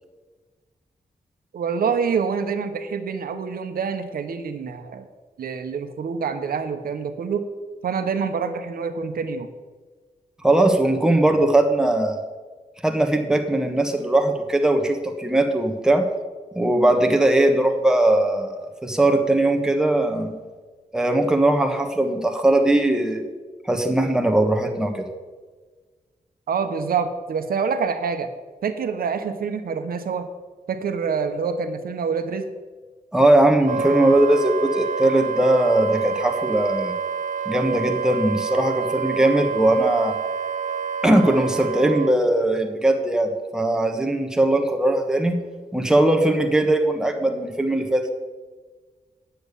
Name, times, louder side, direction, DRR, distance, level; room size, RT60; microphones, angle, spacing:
voice 1, 1.5-5.1 5.4-7.4 7.8-9.5 26.5-28.3 28.6-30.3 30.7-32.5, right 6 dB, 90° right, 8 dB, 1.0 m, -26 dB
voice 2, 10.4-12.2 12.8-16.1 16.5-20.3 20.9-23.2 23.6-25.0 33.1-36.9 37.5-40.2 41.0-45.4 45.7-48.1, right 1 dB, 5° right, 3 dB, 1.2 m, -20 dB
Wind instrument woodwind instrument, 33.6-42.1, right 6 dB, 60° right, 0.6 m, -28 dB
9.3 x 6.8 x 8.3 m, 1.4 s
wide cardioid pair, 145°, 15 cm